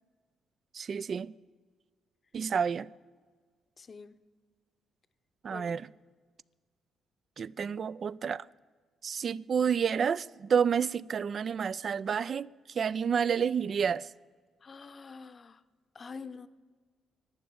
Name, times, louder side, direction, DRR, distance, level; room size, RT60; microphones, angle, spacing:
voice 1, 0.7-1.3 2.3-2.9 5.4-5.9 7.4-8.5 9.0-12.5 12.7-14.1, right 7 dB, 50° right, 0.3 m, -29 dB
voice 2, 3.8-4.1 5.5-5.8 14.6-15.6 15.9-16.5, left 5 dB, 40° left, 0.7 m, -46 dB
12.0 x 9.0 x 8.7 m
cardioid pair, 90°, 0 cm